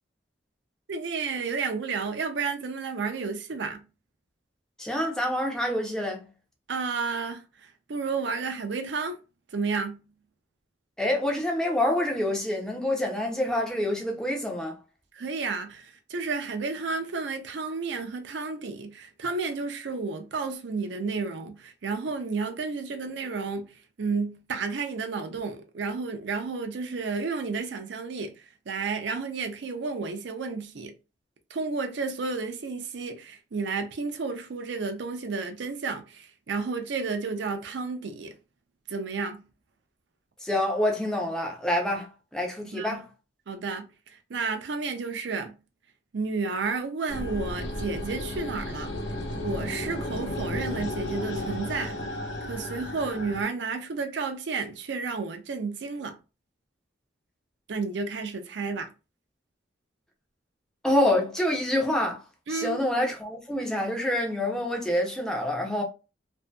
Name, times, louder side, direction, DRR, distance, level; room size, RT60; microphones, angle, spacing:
voice 1, 0.9-3.8 6.7-9.2 9.5-10.0 15.1-30.9 31.5-38.3 38.9-39.4 42.7-43.0 43.5-45.6 46.1-48.9 49.4-52.0 52.4-56.2 57.7-58.9 62.5-62.8, right 4 dB, 65° right, 0.5 m, -32 dB
voice 2, 4.8-6.2 11.0-14.8 40.4-43.1 60.8-62.2 62.5-65.8, left 1 dB, 5° left, 0.5 m, -27 dB
sound 1, 47.1-53.4, left 1 dB, 65° left, 0.9 m, -33 dB
2.6 x 2.6 x 2.2 m
head